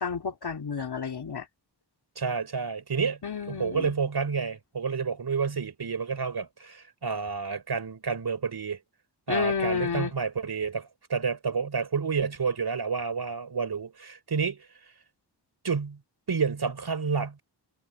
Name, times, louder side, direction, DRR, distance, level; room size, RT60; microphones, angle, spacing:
voice 1, 0.0-1.5 3.2-3.9 9.3-10.1, left 5 dB, 60° left, 2.8 m, -30 dB
voice 2, 2.2-3.2 3.5-8.8 9.3-14.7 15.6-16.0 16.3-17.4, right 5 dB, 60° right, 4.1 m, -29 dB
cardioid pair, 70°, 44 cm